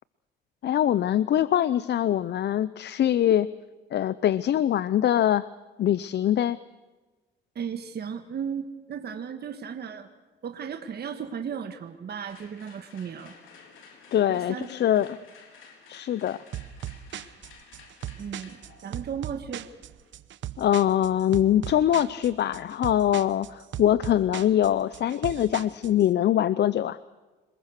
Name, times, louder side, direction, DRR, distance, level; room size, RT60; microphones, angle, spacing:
voice 1, 0.6-3.5 3.9-5.4 5.8-6.6 14.1-15.2 15.9-16.4 20.6-27.0, left 11 dB, 60° left, 17 dB, 0.6 m, -23 dB
voice 2, 7.5-10.1 10.4-13.3 14.3-14.7 18.2-19.7, right 7 dB, 55° right, 6 dB, 1.7 m, -35 dB
sound 1, 12.3-20.3, left 5 dB, 80° left, 4.3 m, -53 dB
sound 2, 16.5-26.1, right 11 dB, 70° right, 1.0 m, -38 dB
27.0 x 21.0 x 6.6 m, 1.2 s
cardioid pair, 90°, 20 cm